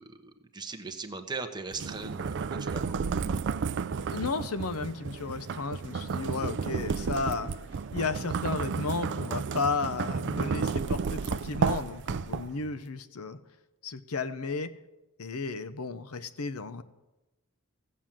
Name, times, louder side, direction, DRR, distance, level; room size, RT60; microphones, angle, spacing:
voice 1, 0.0-3.0, right 4 dB, 20° right, 6 dB, 1.1 m, -39 dB
sound 1, 1.7-12.7, right 5 dB, 55° right, 0.4 m, -32 dB
voice 2, 4.1-7.5 7.9-13.4 13.8-14.7 15.2-16.8, left 4 dB, 80° left, 12 dB, 0.8 m, -33 dB
15.5 x 7.5 x 7.4 m, 1.0 s
head